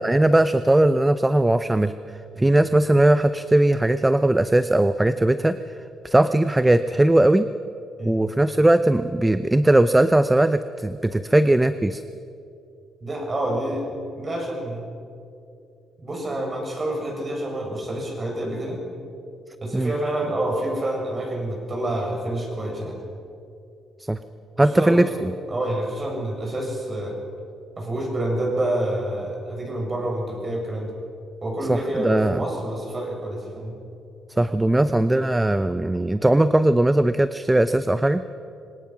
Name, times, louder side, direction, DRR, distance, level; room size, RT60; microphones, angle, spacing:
voice 1, 0.0-1.9 2.4-5.6 6.0-7.5 8.0-12.0 19.7-19.9 24.1-24.2 24.6-25.3 31.7-32.4 34.4-38.2, right 1 dB, 10° right, 12 dB, 0.6 m, -19 dB
voice 2, 13.0-13.9 14.2-14.8 16.0-18.8 19.6-23.0 24.6-25.0 25.5-27.2 27.8-30.9 31.4-33.7, right 1 dB, 30° right, 0 dB, 7.3 m, -28 dB
25.5 x 19.0 x 6.1 m, 2.5 s
cardioid pair, 90°, 0 cm